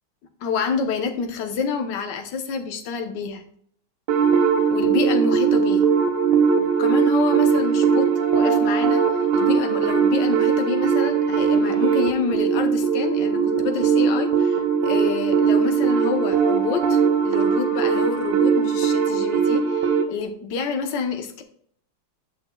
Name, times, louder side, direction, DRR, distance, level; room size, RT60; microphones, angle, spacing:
voice 1, 0.4-3.4 4.7-5.8 6.6-9.0 9.3-21.4, left 5 dB, 65° left, 5 dB, 1.6 m, -28 dB
sound 1, 4.1-20.1, right 6 dB, 70° right, 1.5 m, -20 dB
11.0 x 6.3 x 2.2 m, 0.63 s
omnidirectional pair, 2.1 m